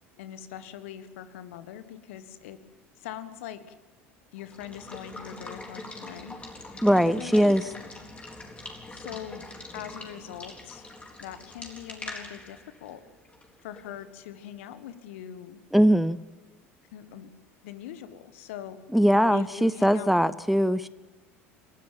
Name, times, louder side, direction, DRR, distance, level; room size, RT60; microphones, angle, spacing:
voice 1, 0.2-2.6 3.0-3.7 4.3-6.4 6.9-7.9 8.9-9.4 9.7-10.9 11.2-13.0 13.6-15.6 15.8-15.9 16.9-17.3 17.6-18.8 19.3-20.3, left 10 dB, 70° left, 12 dB, 1.5 m, -42 dB
Water / Water tap faucet / Liquid, 4.4-14.0, left 2 dB, 15° left, 4.0 m, -43 dB
voice 2, 6.8-7.6 15.7-16.2 18.9-20.9, equal, ahead, 17 dB, 0.6 m, -21 dB
28.5 x 13.0 x 7.4 m, 1.2 s
figure-of-eight pair, 70°, 7 cm